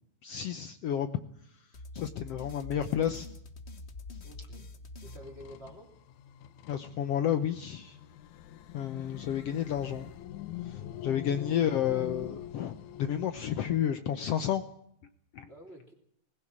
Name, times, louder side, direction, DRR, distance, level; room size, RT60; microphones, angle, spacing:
voice 1, 0.2-1.1 1.9-3.3 6.7-8.0 8.7-10.1 10.6-14.6 15.3-15.5, left 10 dB, 65° left, 10 dB, 1.7 m, -31 dB
sound 1, 1.7-6.0, left 3 dB, 35° left, 1.0 m, -46 dB
voice 2, 4.2-4.7 5.0-5.9 15.5-15.9, equal, 20° right, 3 dB, 3.8 m, -49 dB
sound 2, 5.1-13.8, left 13 dB, 85° left, 2.4 m, -44 dB
20.5 x 16.5 x 8.6 m, 0.72 s
omnidirectional pair, 3.3 m